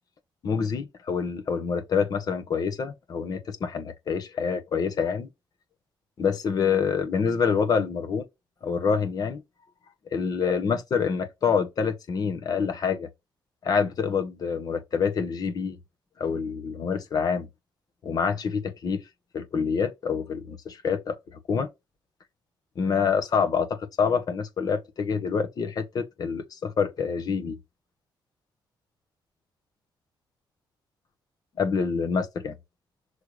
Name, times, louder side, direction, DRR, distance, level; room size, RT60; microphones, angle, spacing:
voice 1, 0.4-5.3 6.2-8.2 8.6-9.4 10.1-13.1 13.6-15.8 16.2-17.5 18.0-19.0 19.3-21.7 22.7-27.6 31.6-32.5, left 6 dB, 50° left, 1.5 m, -26 dB
6.5 x 3.4 x 5.0 m
cardioid pair, 130°, 8 cm